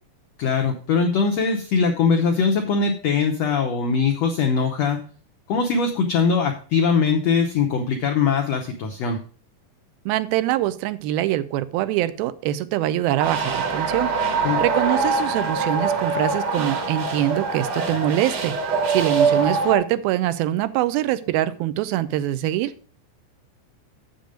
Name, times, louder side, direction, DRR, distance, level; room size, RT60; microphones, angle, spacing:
voice 1, 0.4-5.0 5.5-9.2 14.4-14.6, left 5 dB, 85° left, 4 dB, 1.4 m, -21 dB
voice 2, 10.1-14.1 14.6-22.7, right 13 dB, 85° right, 14 dB, 2.5 m, -24 dB
sound 1, 13.2-19.8, right 4 dB, 60° right, 2.2 m, -23 dB
7.7 x 7.0 x 5.0 m, 0.42 s
omnidirectional pair, 4.2 m